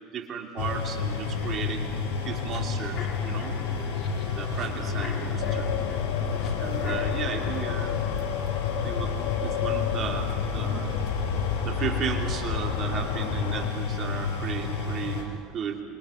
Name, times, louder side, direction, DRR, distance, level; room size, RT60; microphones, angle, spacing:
voice 1, 0.1-1.9 2.2-3.6 4.4-5.7 6.6-8.0 8.8-11.0 11.6-15.8, right 7 dB, 35° right, 2 dB, 2.8 m, -35 dB
sound 1, 0.6-15.2, left 5 dB, 90° left, 4.8 m, -30 dB
sound 2, 1.3-7.7, left 5 dB, 50° left, 2.8 m, -42 dB
sound 3, 5.4-13.7, left 10 dB, 75° left, 1.3 m, -32 dB
27.0 x 24.0 x 5.8 m, 2.3 s
supercardioid pair, 130°, 0 cm